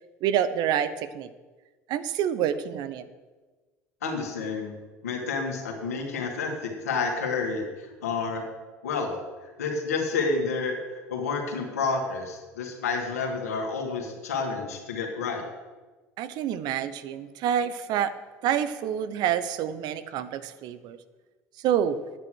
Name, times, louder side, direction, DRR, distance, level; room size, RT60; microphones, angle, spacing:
voice 1, 0.2-1.3 1.9-3.0 16.2-18.1 18.4-21.0 21.6-22.0, right 9 dB, 60° right, 13 dB, 0.9 m, -27 dB
voice 2, 4.0-4.7 5.0-8.4 8.8-9.1 9.6-15.4, left 4 dB, 85° left, 1 dB, 2.4 m, -29 dB
9.6 x 9.3 x 6.4 m, 1.3 s
hypercardioid pair, 70°, 8 cm